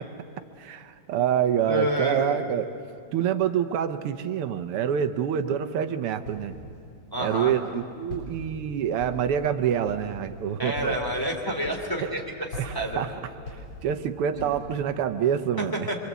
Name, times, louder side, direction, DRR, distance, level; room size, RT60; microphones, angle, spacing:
voice 1, 0.6-2.7 3.1-6.6 7.2-11.0 12.0-12.1 12.6-13.1 13.5-15.9, right 9 dB, 85° right, 9 dB, 1.9 m, -27 dB
voice 2, 1.7-2.4 7.1-7.6 10.6-12.5 12.7-13.0 14.3-14.5 15.6-16.0, right 1 dB, 10° left, 0 dB, 2.8 m, -29 dB
Walk footsteps, 6.2-6.7 7.2-7.7 8.1-8.6 9.0-9.5 9.8-10.2 10.7-11.1 11.6-12.1 12.5-14.0 14.4-14.8, left 2 dB, 80° left, 5.2 m, -41 dB
25.5 x 25.0 x 8.2 m, 2.5 s
omnidirectional pair, 2.4 m